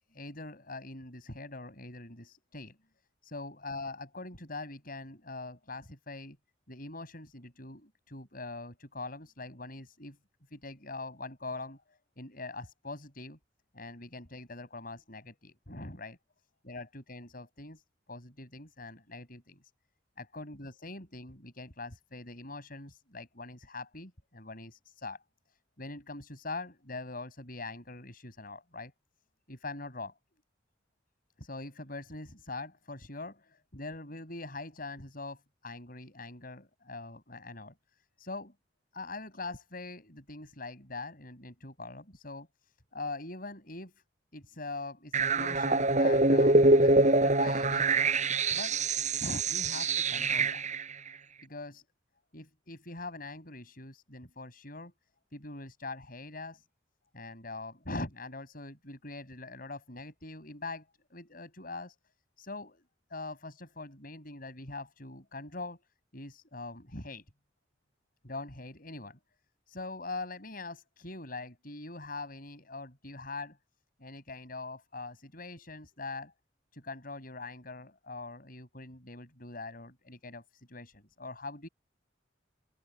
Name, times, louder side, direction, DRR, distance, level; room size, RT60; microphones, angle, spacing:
voice 1, 0.1-2.8 3.2-6.4 6.7-10.2 10.5-13.4 13.7-16.2 16.6-17.8 18.1-19.6 20.2-25.2 25.5-28.9 29.5-30.1 31.4-37.7 38.2-38.5 38.9-44.0 44.3-48.1 48.5-48.7 49.2-50.7 51.4-51.8 52.3-54.9 55.3-56.6 57.1-62.0 62.4-62.8 63.1-65.8 66.1-67.2 68.2-69.2 69.7-73.6 74.0-76.3 76.7-81.7, left 2 dB, 50° left, 7.4 m, -43 dB
sound 1, 45.1-50.8, right 2 dB, 40° right, 5.4 m, -25 dB
open air
head